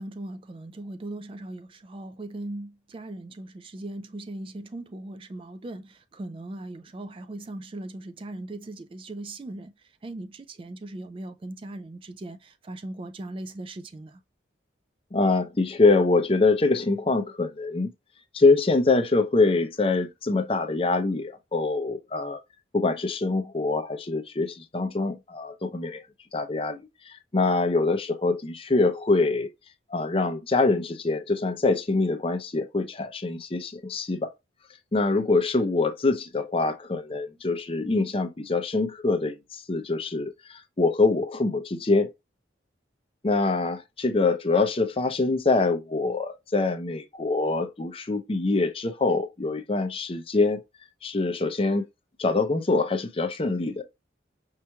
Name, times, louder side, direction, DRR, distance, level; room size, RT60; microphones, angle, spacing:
voice 1, 0.0-9.7 10.0-14.2, right 2 dB, 30° right, 0.3 m, -39 dB
voice 2, 15.1-17.9 18.3-22.4 22.7-26.0 26.3-29.5 29.9-34.3 34.9-42.1 43.2-50.6 51.0-51.9 52.2-53.8, left 3 dB, 30° left, 0.5 m, -24 dB
5.5 x 3.0 x 2.3 m
head